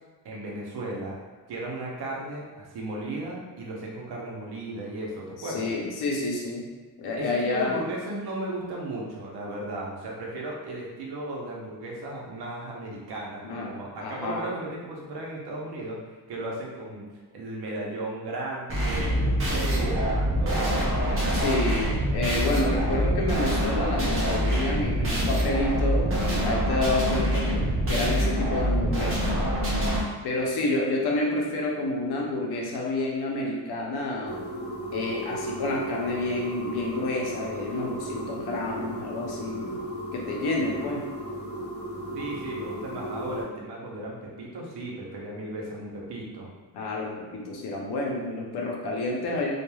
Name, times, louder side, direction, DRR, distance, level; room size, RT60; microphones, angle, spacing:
voice 1, 0.2-1.2 1.5-5.8 7.1-16.0 16.3-17.1 17.3-21.0 42.1-46.5, right 2 dB, 70° right, -3 dB, 0.8 m, -35 dB
voice 2, 5.4-6.7 7.0-7.8 13.4-13.7 14.0-14.5 21.3-29.4 30.2-34.4 34.9-39.8 40.1-41.1 46.7-49.5, left 2 dB, 70° left, -2 dB, 0.7 m, -29 dB
sound 1, 18.7-30.0, equal, 35° right, 0.6 m, -25 dB
sound 2, 34.3-43.4, equal, 30° left, 0.4 m, -35 dB
3.1 x 2.3 x 2.2 m, 1.3 s
cardioid pair, 150°, 40 cm